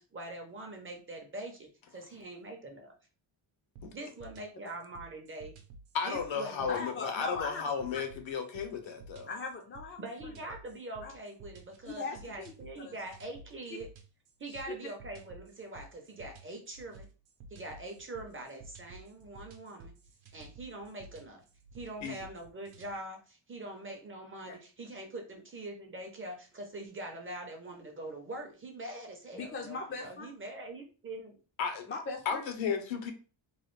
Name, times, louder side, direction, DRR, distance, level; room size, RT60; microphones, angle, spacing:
voice 1, 0.0-2.9 3.9-5.5 6.0-6.7 10.0-13.9 14.4-17.1 17.5-19.9 20.3-21.4 21.7-31.4, right 2 dB, 25° right, 0.5 m, -43 dB
sound 1, 3.8-22.9, right 2 dB, 75° right, 0.7 m, -53 dB
voice 2, 5.9-9.3 22.0-22.2 31.6-31.9 32.3-33.1, left 6 dB, 70° left, 0.7 m, -34 dB
voice 3, 6.7-7.6 7.9-8.0 9.3-10.3 11.0-11.1 11.8-12.5 12.8-13.0 14.5-14.8 24.4-24.6 29.3-30.3 31.9-32.4, left 3 dB, 30° left, 0.4 m, -39 dB
3.1 x 2.3 x 3.1 m
wide cardioid pair, 170°, 47 cm